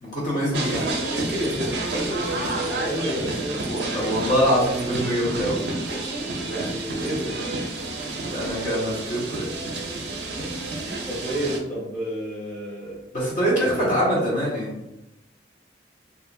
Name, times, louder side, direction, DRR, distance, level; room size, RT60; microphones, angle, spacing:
voice 1, 0.0-0.7 3.7-5.6 8.2-9.5 13.1-14.7, equal, 45° left, -6 dB, 1.2 m, -24 dB
sound 1, 0.5-11.6, right 2 dB, 65° right, 0.5 m, -30 dB
voice 2, 0.6-3.8 6.4-7.4 10.4-13.0 13.5-13.9, equal, 5° left, -10 dB, 0.7 m, -31 dB
2.6 x 2.5 x 2.5 m, 0.90 s
head